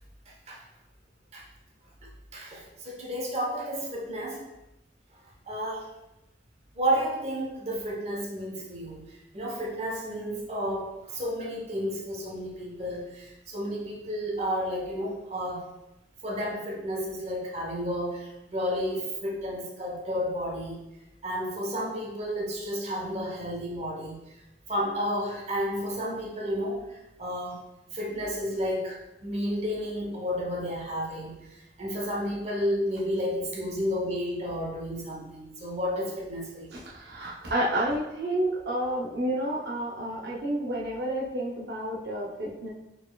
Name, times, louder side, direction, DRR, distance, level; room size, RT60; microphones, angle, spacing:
voice 1, 0.3-0.6 1.3-1.4 2.0-4.4 5.4-5.9 6.7-9.0 9.3-15.6 16.2-20.8 21.2-24.2 24.7-27.6 27.9-36.8, equal, 35° right, -2 dB, 0.9 m, -32 dB
voice 2, 36.7-42.7, right 1 dB, 70° right, -4 dB, 0.6 m, -30 dB
4.5 x 4.1 x 2.3 m, 0.93 s
head